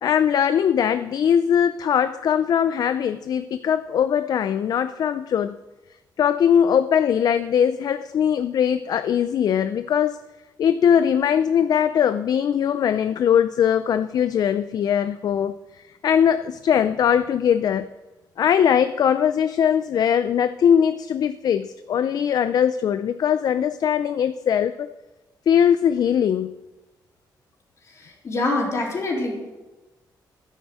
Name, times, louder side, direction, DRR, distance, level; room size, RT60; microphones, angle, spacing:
voice 1, 0.0-5.6 6.2-10.2 10.6-15.6 16.0-17.9 18.4-24.9 25.5-26.5, left 8 dB, 60° left, 12 dB, 0.4 m, -20 dB
voice 2, 27.9-29.3, left 2 dB, 40° left, -1 dB, 3.8 m, -25 dB
13.0 x 10.5 x 6.3 m, 1.1 s
wide cardioid pair, 155°, 8 cm